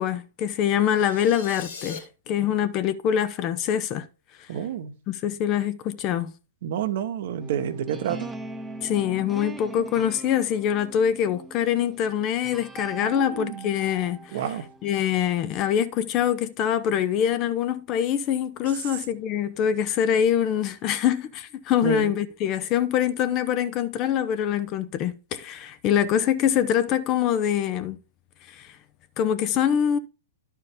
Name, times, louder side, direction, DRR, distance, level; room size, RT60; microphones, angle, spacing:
voice 1, 0.0-4.0 5.1-6.3 8.8-14.4 14.8-28.0 28.5-28.7 29.2-30.0, left 9 dB, 35° left, 0.7 m, -24 dB
sound 1, 0.8-2.0, left 5 dB, 65° left, 2.3 m, -40 dB
voice 2, 4.5-4.9 6.6-8.3 13.0-13.7 14.3-14.7 21.8-22.1, right 9 dB, 55° right, 0.9 m, -29 dB
sound 2, 7.4-15.4, right 2 dB, 5° right, 0.6 m, -41 dB
11.5 x 4.6 x 3.6 m
figure-of-eight pair, 115°, 0 cm